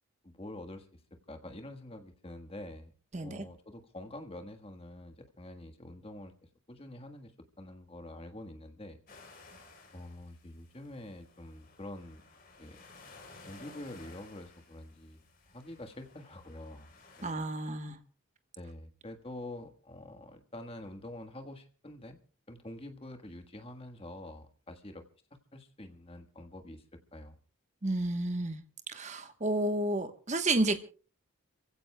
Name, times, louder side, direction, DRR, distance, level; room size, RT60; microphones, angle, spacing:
voice 1, 0.2-0.9 1.3-2.9 3.2-6.3 6.7-7.3 7.6-9.0 9.9-12.2 12.6-12.8 13.5-15.2 15.5-16.9 17.2-17.4 18.6-22.2 22.5-25.0 25.5-26.8 27.1-27.4, left 1 dB, 25° left, 1.4 m, -46 dB
voice 2, 3.1-3.4 17.2-18.0 27.8-28.6 28.9-30.8, right 2 dB, 35° right, 1.1 m, -31 dB
sound 1, 9.1-17.3, left 3 dB, 45° left, 3.6 m, -56 dB
30.0 x 15.5 x 2.2 m
head